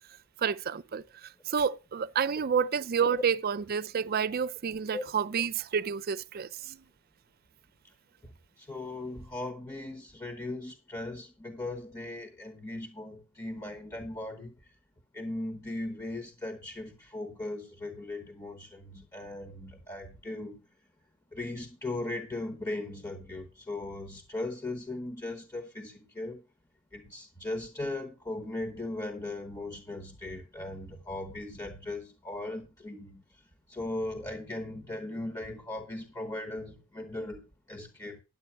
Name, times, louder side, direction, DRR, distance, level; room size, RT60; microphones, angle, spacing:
voice 1, 0.4-6.8, right 7 dB, 50° right, 0.4 m, -29 dB
voice 2, 8.6-14.5 15.1-20.6 21.3-26.4 26.9-33.2 33.7-38.2, left 2 dB, 15° left, 1.0 m, -38 dB
9.7 x 8.4 x 4.5 m
head